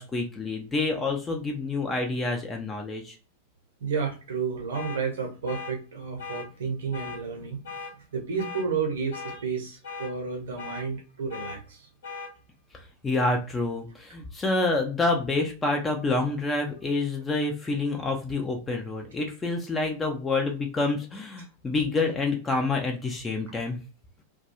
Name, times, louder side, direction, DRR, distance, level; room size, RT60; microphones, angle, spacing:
voice 1, 0.0-3.2 13.0-23.8, left 3 dB, 15° left, 2 dB, 0.4 m, -28 dB
voice 2, 3.8-11.9, right 5 dB, 60° right, 2 dB, 0.8 m, -31 dB
sound 1, 4.7-5.0 5.5-5.7 6.2-6.5 6.9-7.2 7.6-7.9 8.4-8.6 9.1-9.4 9.8-10.1 10.6-10.8 11.3-11.6 12.0-12.3, left 5 dB, 60° left, 0.8 m, -38 dB
2.3 x 2.2 x 2.8 m, 0.35 s
figure-of-eight pair, 90°, 0 cm